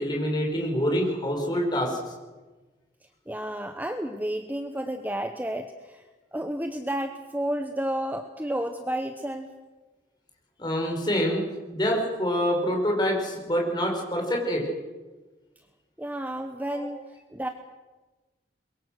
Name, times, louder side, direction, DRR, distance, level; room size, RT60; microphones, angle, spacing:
voice 1, 0.0-2.0 10.6-11.4 11.7-14.6 16.7-16.9, equal, 25° left, 0 dB, 5.2 m, -26 dB
voice 2, 3.3-6.0 6.3-9.5 16.0-17.0 17.3-17.5, right 1 dB, 10° right, 7 dB, 0.9 m, -31 dB
23.0 x 22.5 x 6.5 m, 1.2 s
head